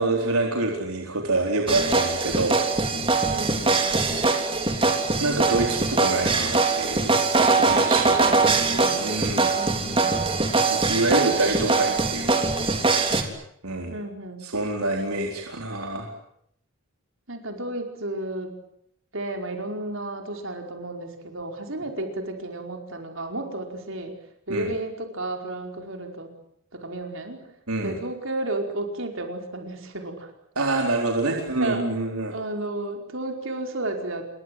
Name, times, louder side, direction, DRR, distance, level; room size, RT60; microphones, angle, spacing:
voice 1, 0.0-2.6 4.8-7.2 7.6-9.5 10.7-12.4 13.6-13.9 14.4-16.1 24.5-24.7 27.7-28.0 30.6-32.3, right 2 dB, 80° right, 1 dB, 4.3 m, -27 dB
sound 1, 1.7-13.2, right 3 dB, 25° right, 3.4 m, -22 dB
voice 2, 3.3-3.8 8.2-9.1 9.5-10.4 11.4-11.9 13.9-14.4 17.3-18.5 19.1-24.1 24.5-26.3 26.7-27.4 27.8-30.3 31.6-31.9 32.3-34.3, right 2 dB, 60° right, 4 dB, 4.9 m, -33 dB
29.0 x 24.0 x 7.9 m, 0.73 s
head